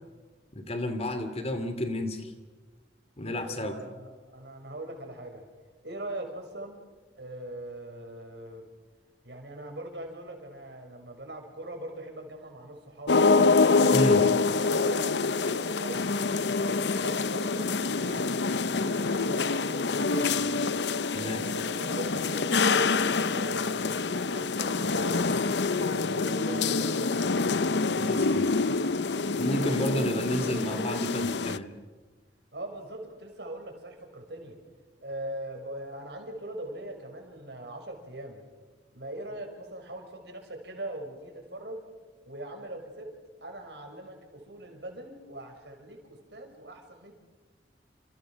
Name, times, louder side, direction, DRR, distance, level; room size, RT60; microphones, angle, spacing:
voice 1, 0.5-2.3 3.2-3.7 13.9-14.2 21.1-21.4 28.0-28.5 29.4-31.7, left 1 dB, 35° left, 9 dB, 2.6 m, -30 dB
voice 2, 3.2-5.4 5.8-6.8 7.1-8.7 9.2-13.5 14.1-16.1 16.7-17.7 17.9-20.6 21.1-25.2 25.7-27.4 29.5-30.8 32.5-34.6 35.0-38.4 38.9-41.8 42.3-43.1 43.4-47.1, right 1 dB, 70° right, 3 dB, 6.3 m, -41 dB
sound 1, 13.1-31.6, left 4 dB, 70° left, 0.8 m, -26 dB
29.0 x 28.5 x 6.4 m, 1.3 s
head